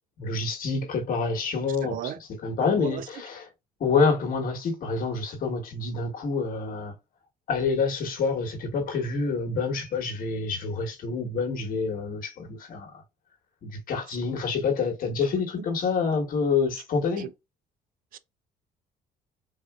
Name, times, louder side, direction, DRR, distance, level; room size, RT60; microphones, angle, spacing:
voice 1, 0.2-3.5 3.8-6.9 7.5-13.0 13.6-17.3, left 4 dB, 55° left, 1.3 m, -27 dB
voice 2, 1.8-2.2 2.8-3.0 18.1-18.2, right 11 dB, 55° right, 0.4 m, -34 dB
3.7 x 2.7 x 2.3 m
cardioid pair, 110°, 17 cm